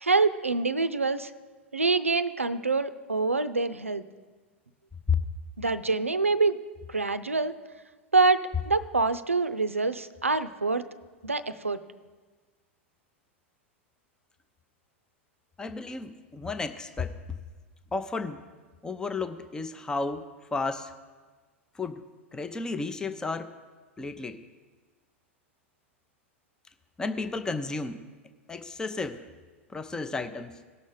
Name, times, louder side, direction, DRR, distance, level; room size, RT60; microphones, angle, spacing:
voice 1, 0.0-1.3 1.7-4.0 5.6-6.6 6.9-7.5 8.1-10.8 11.2-11.8, right 3 dB, 85° right, 12 dB, 0.5 m, -25 dB
voice 2, 15.6-17.4 17.9-18.4 18.8-20.9 21.7-22.0 22.3-23.5 24.0-24.4 27.0-28.0 28.5-29.3 29.7-30.6, left 4 dB, 10° left, 10 dB, 0.6 m, -32 dB
18.0 x 6.2 x 3.8 m, 1.4 s
figure-of-eight pair, 90°, 7 cm